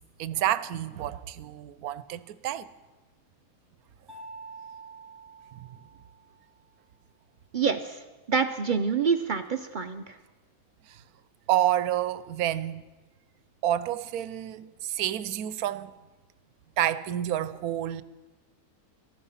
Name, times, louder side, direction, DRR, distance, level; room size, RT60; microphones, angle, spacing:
voice 1, 0.2-2.7 11.5-12.8 13.6-15.9 16.8-18.0, right 12 dB, 90° right, 1.1 m, -29 dB
Mallet percussion, 4.1-6.6, right 4 dB, 15° right, 1.3 m, -47 dB
voice 2, 7.5-10.2, right 6 dB, 60° right, 0.5 m, -27 dB
14.0 x 13.0 x 5.6 m
omnidirectional pair, 1.5 m